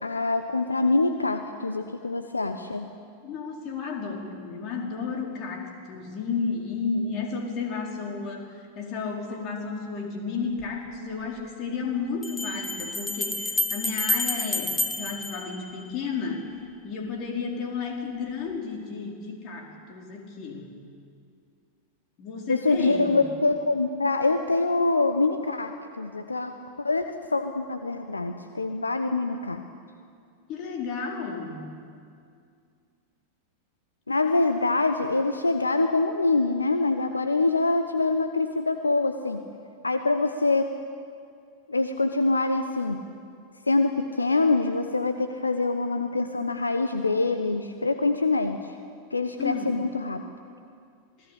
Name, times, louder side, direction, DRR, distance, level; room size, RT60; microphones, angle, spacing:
voice 1, 0.0-2.9 22.5-29.6 34.1-39.4 39.8-40.7 41.7-43.0 43.7-48.6 49.1-50.2, left 3 dB, 80° left, 8 dB, 1.1 m, -25 dB
voice 2, 3.2-16.5 16.8-20.7 22.2-23.2 30.5-31.7 49.4-49.7, left 5 dB, 40° left, 0 dB, 4.7 m, -32 dB
sound 1, 10.6-10.7 12.2-16.2, left 2 dB, 10° left, 1.8 m, -29 dB
27.0 x 19.0 x 8.6 m, 2.3 s
figure-of-eight pair, 90°, 0 cm